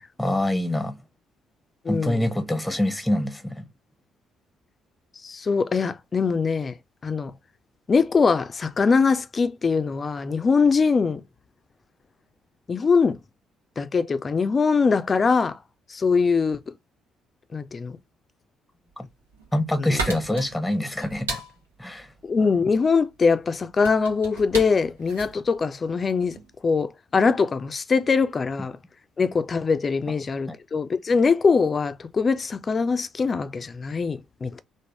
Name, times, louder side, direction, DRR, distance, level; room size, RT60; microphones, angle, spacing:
voice 1, 0.2-1.0 1.9-3.7 19.0-19.1 19.5-21.4 21.8-22.1, left 1 dB, 5° left, 0.7 m, -25 dB
voice 2, 1.8-2.3 5.2-6.7 7.0-7.3 7.9-11.2 12.7-13.2 13.8-15.6 15.9-16.7 17.5-18.0 19.8-20.0 22.2-26.3 26.6-28.8 29.2-34.6, left 5 dB, 35° left, 0.4 m, -22 dB
sound 1, 19.1-26.5, right 3 dB, 80° right, 0.7 m, -36 dB
3.6 x 2.0 x 3.1 m
figure-of-eight pair, 45°, 0 cm